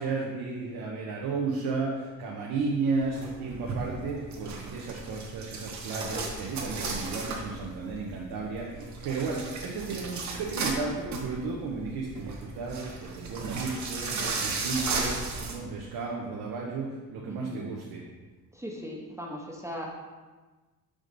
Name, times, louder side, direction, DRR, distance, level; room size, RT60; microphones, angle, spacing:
voice 1, 0.0-18.0, right 4 dB, 90° right, -2 dB, 0.9 m, -33 dB
sound 1, 3.0-15.5, right 3 dB, 50° right, 1.0 m, -35 dB
voice 2, 17.3-17.6 18.5-19.9, equal, 10° right, -2 dB, 0.6 m, -38 dB
5.0 x 3.9 x 5.3 m, 1.3 s
cardioid pair, 155°, 35 cm